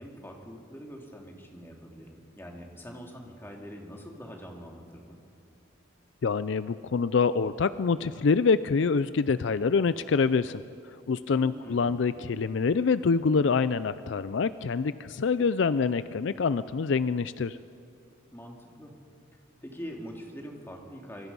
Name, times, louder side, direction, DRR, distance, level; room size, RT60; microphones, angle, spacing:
voice 1, 0.0-5.2 11.4-11.9 18.3-19.0 19.6-21.3, equal, 10° left, 1 dB, 2.5 m, -44 dB
voice 2, 6.2-10.6 11.1-17.6, left 5 dB, 65° left, 15 dB, 0.4 m, -26 dB
26.0 x 23.5 x 5.5 m, 2.5 s
head